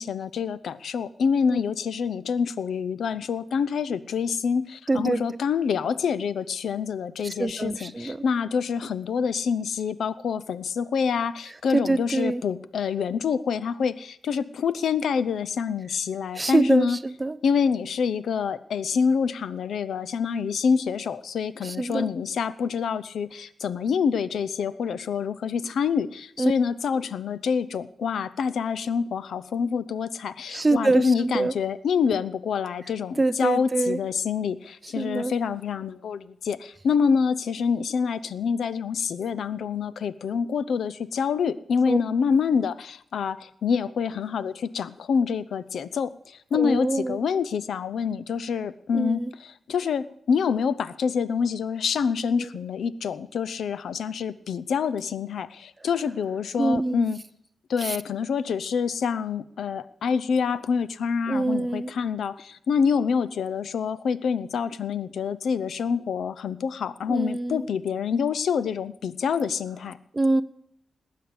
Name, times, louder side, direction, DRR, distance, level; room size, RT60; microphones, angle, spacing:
voice 1, 0.0-17.0 17.4-57.2 57.7-70.0, left 6 dB, 75° left, 16 dB, 0.6 m, -26 dB
voice 2, 4.9-5.2 7.2-8.2 11.7-12.4 16.3-17.4 21.6-22.1 26.4-26.5 30.5-31.5 33.2-34.0 35.0-35.3 41.9-42.0 46.5-47.2 48.9-49.3 52.4-52.5 56.6-57.1 57.8-58.0 61.3-61.9 67.1-67.7 70.1-70.4, right 2 dB, 20° right, 15 dB, 0.5 m, -25 dB
19.0 x 8.5 x 7.9 m, 0.72 s
wide cardioid pair, 165°, 0 cm